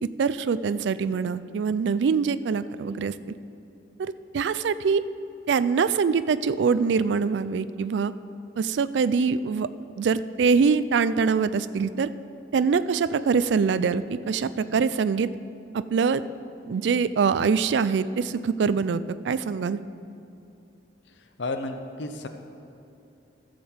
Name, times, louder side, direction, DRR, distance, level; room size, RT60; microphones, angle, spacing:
voice 1, 0.0-3.3 4.0-5.0 5.5-8.1 8.6-9.7 10.0-12.1 12.5-15.3 15.7-16.2 16.7-19.8, right 5 dB, 75° right, 15 dB, 0.3 m, -24 dB
voice 2, 21.4-22.3, left 2 dB, 80° left, 6 dB, 0.8 m, -32 dB
13.5 x 5.2 x 7.1 m, 2.7 s
head